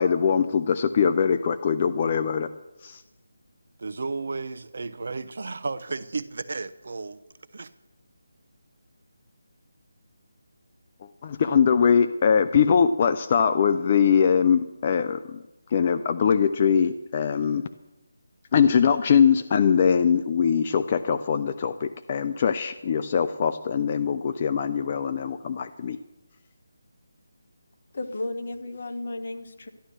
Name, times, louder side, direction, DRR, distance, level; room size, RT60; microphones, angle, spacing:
voice 1, 0.0-2.5 2.8-3.0 11.2-15.4 15.7-17.6 18.5-26.0, left 7 dB, 35° left, 10 dB, 0.5 m, -22 dB
voice 2, 3.8-7.2 7.5-7.7, right 3 dB, 60° right, 12 dB, 0.8 m, -33 dB
voice 3, 27.9-29.7, left 2 dB, 55° left, 7 dB, 1.4 m, -33 dB
12.5 x 11.5 x 6.5 m, 1.0 s
figure-of-eight pair, 160°, 0 cm